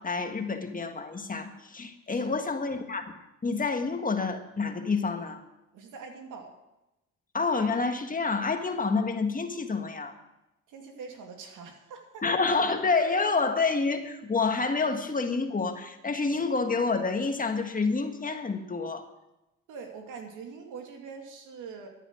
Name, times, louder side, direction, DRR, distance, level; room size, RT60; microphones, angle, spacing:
voice 1, 0.0-3.2 3.4-5.4 7.3-10.1 12.2-19.1, left 4 dB, 25° left, 6 dB, 1.6 m, -28 dB
voice 2, 5.7-6.5 10.7-12.2 19.7-21.9, right 5 dB, 85° right, 3 dB, 2.6 m, -43 dB
14.0 x 10.0 x 6.3 m, 0.95 s
cardioid pair, 90°, 30 cm